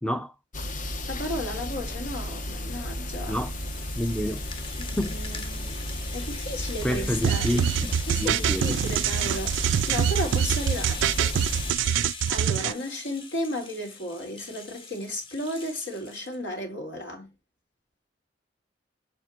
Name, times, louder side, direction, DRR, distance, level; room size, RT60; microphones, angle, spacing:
voice 1, 0.0-0.3 3.3-3.5 4.0-4.4 5.0-5.2 6.8-8.8 9.1-9.2, equal, 5° left, 0.5 m, -29 dB
sound 1, 0.5-11.7, left 1 dB, 45° left, 0.9 m, -34 dB
voice 2, 1.0-3.4 4.8-5.9 6.1-7.5 8.1-9.6 9.9-11.4 12.3-17.3, left 1 dB, 75° left, 3.1 m, -34 dB
Rattle (instrument), 2.5-16.4, left 4 dB, 30° left, 1.2 m, -41 dB
sound 2, 7.2-12.7, right 9 dB, 80° right, 0.3 m, -25 dB
7.9 x 3.6 x 4.4 m
head